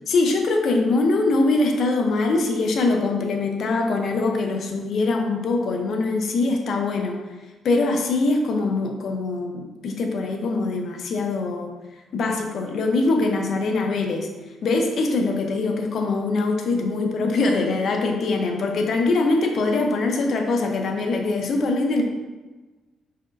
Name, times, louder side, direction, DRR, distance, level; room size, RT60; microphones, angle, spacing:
voice 1, 0.1-7.2 7.6-11.7 12.1-14.3 14.6-22.0, left 3 dB, 65° left, 3 dB, 0.7 m, -23 dB
4.8 x 4.2 x 2.5 m, 1.2 s
cardioid pair, 90°, 0 cm